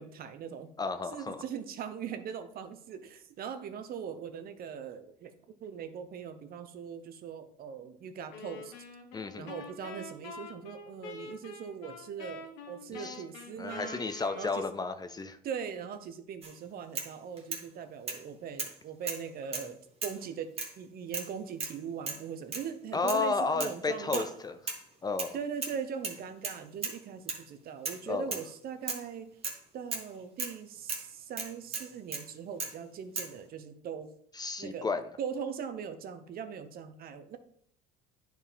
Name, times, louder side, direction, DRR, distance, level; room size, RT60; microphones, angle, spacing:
voice 1, 0.0-0.7 1.0-8.7 9.4-14.6 15.4-24.4 25.3-29.3 29.7-34.1 34.6-34.9 35.2-37.4, right 7 dB, 50° right, 10 dB, 0.9 m, -40 dB
voice 2, 0.8-1.4 9.1-9.5 13.0-13.2 13.6-15.4 22.9-24.5 25.0-25.4 28.1-28.4 34.4-35.0, left 4 dB, 20° left, 9 dB, 0.6 m, -32 dB
sound 1, 8.3-14.9, left 3 dB, 80° left, 1.3 m, -46 dB
sound 2, 16.4-16.6 16.9-17.7 18.1-18.2 18.6-18.8 19.0-19.7 20.0-20.2 20.6-20.7 21.1-21.3 21.6-21.8 22.1-22.2 22.5-22.7 23.1-23.3 23.6-23.8 24.1-24.3 24.7-25.3 25.6-25.8 26.0-27.0 27.3-27.4 27.8-28.0 28.3-28.5 28.9-29.1 29.4-29.6 29.9-30.1 30.4-30.6 30.9-31.1 31.4-32.3 32.6-32.8 33.2-33.3, right 4 dB, 30° right, 1.7 m, -37 dB
9.8 x 4.5 x 3.6 m, 0.66 s
supercardioid pair, 90°, 20 cm